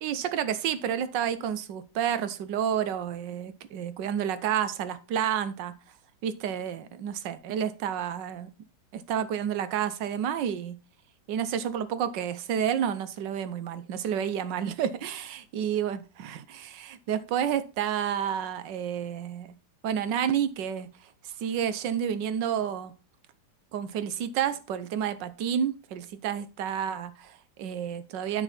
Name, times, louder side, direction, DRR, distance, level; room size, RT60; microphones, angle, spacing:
voice 1, 0.0-5.7 6.2-8.5 8.9-10.8 11.3-15.2 15.5-19.5 19.8-20.9 21.2-22.9 23.7-28.4, right 9 dB, 90° right, 1.5 m, -30 dB
9.0 x 6.2 x 4.3 m
omnidirectional pair, 1.9 m